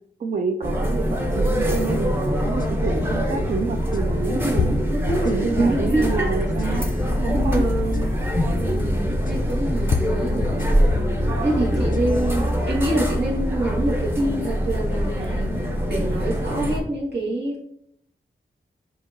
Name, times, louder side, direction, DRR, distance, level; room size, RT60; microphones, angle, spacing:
voice 1, 0.2-4.7 5.1-6.9 7.2-7.6, right 4 dB, 40° right, 5 dB, 0.4 m, -28 dB
sound 1, 0.6-16.8, equal, 10° right, 0.9 m, -23 dB
sound 2, 2.6-2.7 3.9-4.0 4.6-5.9 6.4-7.0 7.9-8.0 9.3-9.4 9.9-11.2 11.7-12.3, left 5 dB, 45° left, 0.4 m, -28 dB
voice 2, 5.2-6.1 6.6-6.9 7.3-8.2 8.6-10.8 11.4-15.5 15.9-17.6, right 2 dB, 60° right, -4 dB, 1.8 m, -26 dB
6.4 x 2.9 x 2.7 m, 0.72 s
wide cardioid pair, 80°, 19 cm